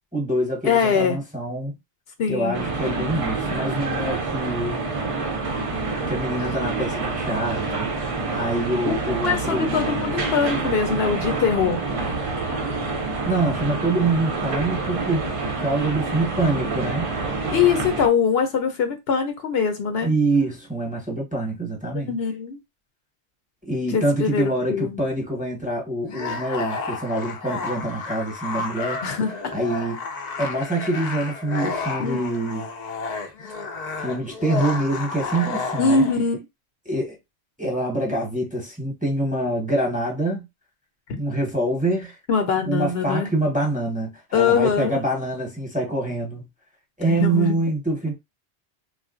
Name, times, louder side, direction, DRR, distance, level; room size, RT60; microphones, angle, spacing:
voice 1, 0.1-1.7 2.3-4.8 6.0-7.9 8.3-9.8 13.3-15.3 15.6-17.1 20.0-22.1 23.6-29.0 29.5-30.0 30.4-32.7 34.0-36.0 36.8-37.2 37.6-40.5 41.2-42.2 42.6-46.5 47.0-48.1, right 2 dB, 10° right, 0.9 m, -25 dB
voice 2, 0.6-1.2 2.2-2.6 8.8-11.8 17.5-20.1 22.1-22.6 23.9-25.0 29.0-29.5 32.0-32.2 35.8-36.4 42.3-43.3 44.3-45.0 47.1-47.6, left 6 dB, 70° left, 0.9 m, -22 dB
sound 1, 2.5-18.1, right 3 dB, 45° right, 0.4 m, -27 dB
sound 2, 26.0-36.2, left 4 dB, 50° left, 0.6 m, -31 dB
3.4 x 2.4 x 2.4 m
omnidirectional pair, 1.1 m